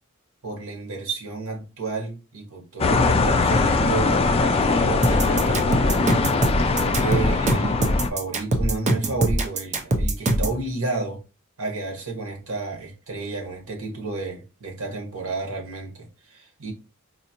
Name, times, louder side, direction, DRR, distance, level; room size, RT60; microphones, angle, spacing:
voice 1, 0.4-6.1 6.7-7.8 8.1-11.2 11.6-16.7, right 3 dB, 85° right, 1.2 m, -31 dB
sound 1, 2.8-8.1, left 3 dB, 30° left, 0.3 m, -21 dB
sound 2, 5.0-10.6, right 1 dB, 35° right, 0.6 m, -22 dB
4.2 x 2.6 x 2.8 m
head